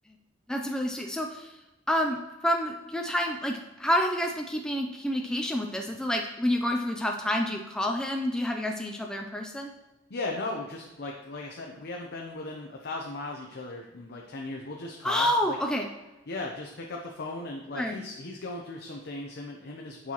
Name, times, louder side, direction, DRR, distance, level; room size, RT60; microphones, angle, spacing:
voice 1, 0.5-1.5 1.9-2.2 2.4-9.7 15.0-15.9 17.7-18.0, equal, 5° left, 2 dB, 0.3 m, -28 dB
voice 2, 10.1-15.6 16.3-20.1, left 2 dB, 55° left, 0 dB, 0.7 m, -37 dB
8.7 x 5.5 x 2.9 m, 1.1 s
head